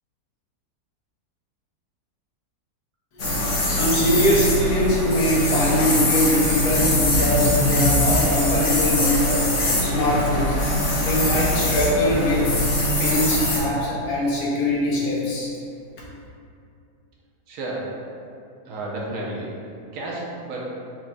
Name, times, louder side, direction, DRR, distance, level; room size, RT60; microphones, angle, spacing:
sound 1, 3.2-13.6, left 1 dB, 55° left, 1.1 m, -22 dB
voice 1, 3.7-9.4 9.8-10.7 11.0-12.5 13.0-15.5, left 1 dB, 75° left, -4 dB, 1.4 m, -22 dB
voice 2, 17.5-18.0 18.7-19.5 19.9-20.8, right 2 dB, 75° right, -4 dB, 1.2 m, -31 dB
4.7 x 4.0 x 2.2 m, 2.5 s
omnidirectional pair, 1.7 m